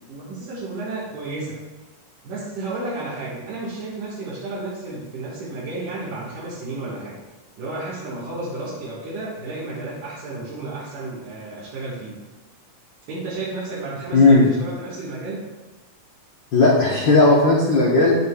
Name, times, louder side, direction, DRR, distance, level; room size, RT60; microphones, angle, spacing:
voice 1, 0.1-1.6 2.2-7.2 7.6-12.2 13.1-15.4, right 2 dB, 80° right, -8 dB, 3.1 m, -32 dB
voice 2, 14.1-14.5 16.5-18.1, left 3 dB, 80° left, -4 dB, 1.0 m, -15 dB
9.8 x 8.9 x 2.3 m, 1.2 s
omnidirectional pair, 3.6 m